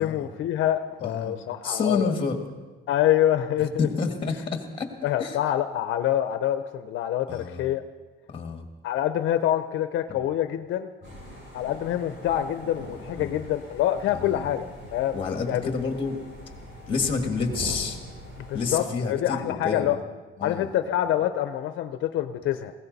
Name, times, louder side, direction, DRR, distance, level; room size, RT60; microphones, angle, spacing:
voice 1, 0.0-2.1 2.9-3.9 5.0-7.8 8.8-10.9 11.5-15.2 15.5-15.7 18.4-20.0 20.4-22.7, left 11 dB, 70° left, 9 dB, 0.6 m, -26 dB
voice 2, 1.0-1.4 1.6-2.4 3.8-4.9 5.2-5.4 7.3-7.6 8.3-8.7 10.1-10.2 11.0-11.1 13.2-13.4 14.1-14.5 15.1-16.2 16.9-18.0 18.5-20.0 20.4-20.7, left 4 dB, 25° left, 5 dB, 1.8 m, -29 dB
sound 1, 11.0-18.8, equal, 60° right, 5.6 m, -42 dB
20.0 x 17.0 x 4.1 m, 1.3 s
cardioid pair, 170°, 21 cm